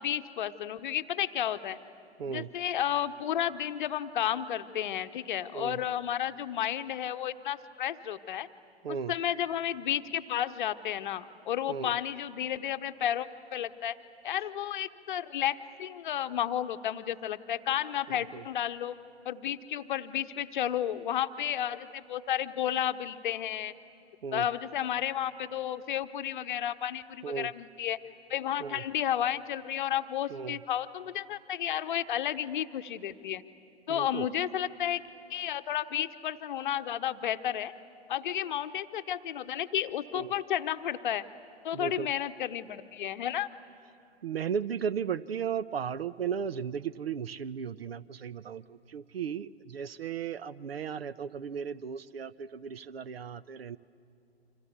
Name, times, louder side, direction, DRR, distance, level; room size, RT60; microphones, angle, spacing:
voice 1, 0.0-1.8 2.3-8.5 8.9-14.0 14.2-18.9 19.2-23.7 24.3-28.0 28.3-33.4 33.9-35.0 35.3-37.7 38.1-41.2 41.6-43.5, left 11 dB, 45° left, 11 dB, 0.9 m, -32 dB
voice 2, 2.2-2.5 5.5-5.8 8.8-9.1 11.7-11.9 18.1-18.4 24.2-24.5 27.2-27.5 28.6-28.8 30.3-30.6 33.9-34.3 40.1-40.3 41.7-42.1 44.2-53.8, right 7 dB, 65° right, 18 dB, 0.7 m, -35 dB
29.5 x 26.0 x 7.0 m, 2.5 s
figure-of-eight pair, 110°, 33 cm